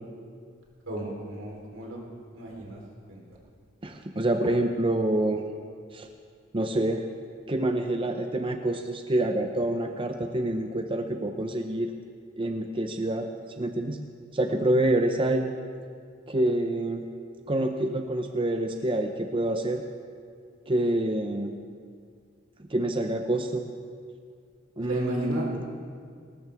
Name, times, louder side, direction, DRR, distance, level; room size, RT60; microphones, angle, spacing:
voice 1, 0.9-2.0 2.3-2.8 3.1-3.2 24.8-25.5, right 1 dB, 85° right, -2 dB, 3.9 m, -34 dB
voice 2, 3.8-5.4 5.9-6.1 6.5-7.0 7.5-11.9 12.4-13.3 13.6-14.0 14.3-15.5 16.3-17.1 17.5-19.8 20.7-21.5 22.7-23.6 24.8-25.6, right 1 dB, 25° right, 5 dB, 0.7 m, -27 dB
19.5 x 19.0 x 3.5 m, 2.1 s
head